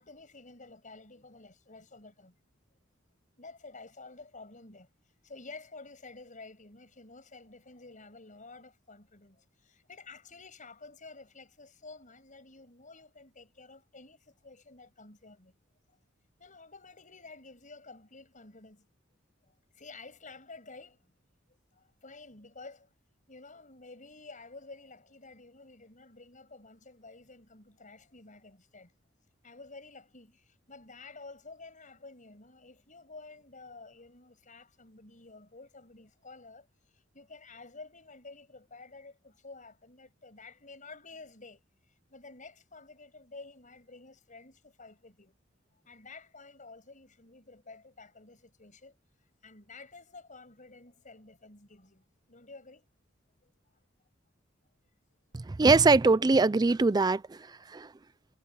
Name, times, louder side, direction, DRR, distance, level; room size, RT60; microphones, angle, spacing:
voice 1, 0.0-2.4 3.4-15.5 16.4-18.9 19.5-21.3 21.7-22.9 23.3-28.9 29.4-41.6 41.9-45.3 45.7-49.0 49.4-52.9 53.4-53.5, left 3 dB, 40° left, 6.4 m, -51 dB
voice 2, 55.5-57.4 57.7-57.9, right 3 dB, 20° right, 0.4 m, -22 dB
head